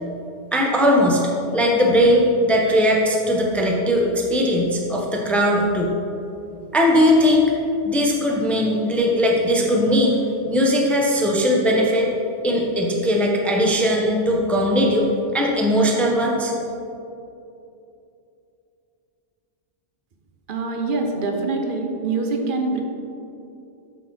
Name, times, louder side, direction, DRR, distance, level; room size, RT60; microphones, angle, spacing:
voice 1, 0.5-1.3 1.5-5.9 6.7-7.5 7.8-10.2 10.5-12.1 12.4-15.1 15.3-16.5, equal, ahead, -1 dB, 0.9 m, -19 dB
voice 2, 20.5-22.8, right 3 dB, 50° right, 3 dB, 1.1 m, -24 dB
13.5 x 5.8 x 4.4 m, 2.8 s
omnidirectional pair, 1.2 m